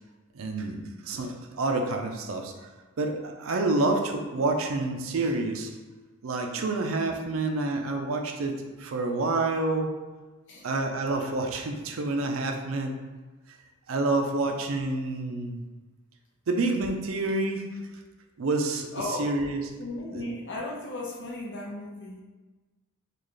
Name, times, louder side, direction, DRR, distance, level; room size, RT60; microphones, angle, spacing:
voice 1, 0.3-0.8 1.0-2.5 3.0-5.7 6.2-10.0 10.6-13.0 13.9-15.6 16.5-17.6 18.4-18.9 19.2-19.6 20.1-20.3, right 2 dB, 85° right, 4 dB, 0.5 m, -28 dB
voice 2, 18.9-19.4 19.8-22.2, left 2 dB, 60° left, -3 dB, 0.8 m, -35 dB
3.8 x 2.4 x 3.2 m, 1.2 s
head